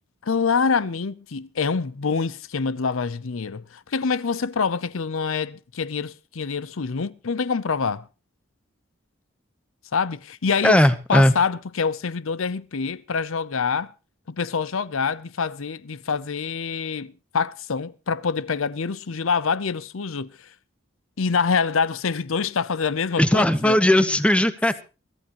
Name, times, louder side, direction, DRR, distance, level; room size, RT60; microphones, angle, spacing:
voice 1, 0.2-8.1 9.9-10.8 11.1-13.9 14.3-20.5 21.2-23.8, left 5 dB, 75° left, 0.6 m, -26 dB
voice 2, 10.6-11.3 23.2-24.8, left 1 dB, 5° left, 0.8 m, -18 dB
23.0 x 14.0 x 3.0 m
head